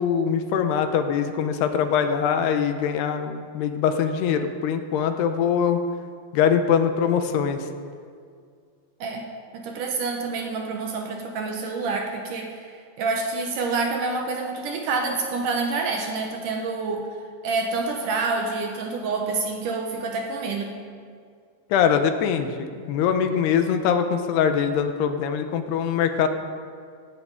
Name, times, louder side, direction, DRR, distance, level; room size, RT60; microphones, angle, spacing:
voice 1, 0.0-5.8 6.3-7.7 21.7-26.3, left 7 dB, 85° left, 7 dB, 3.0 m, -23 dB
voice 2, 9.5-17.1 17.4-20.7, right 3 dB, 65° right, 3 dB, 2.3 m, -27 dB
17.0 x 16.5 x 4.9 m, 2.1 s
omnidirectional pair, 4.7 m